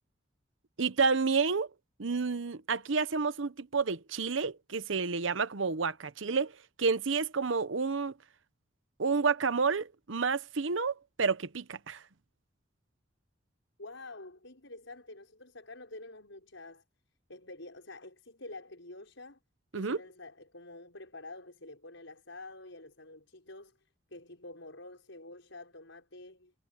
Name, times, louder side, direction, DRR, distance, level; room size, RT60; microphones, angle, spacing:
voice 1, 0.8-1.7 2.0-6.5 6.8-8.1 9.0-12.0 19.7-20.0, right 4 dB, 80° right, 0.9 m, -30 dB
voice 2, 13.8-16.8 17.3-19.4 19.7-23.8 24.1-26.5, left 2 dB, 75° left, 6.0 m, -48 dB
head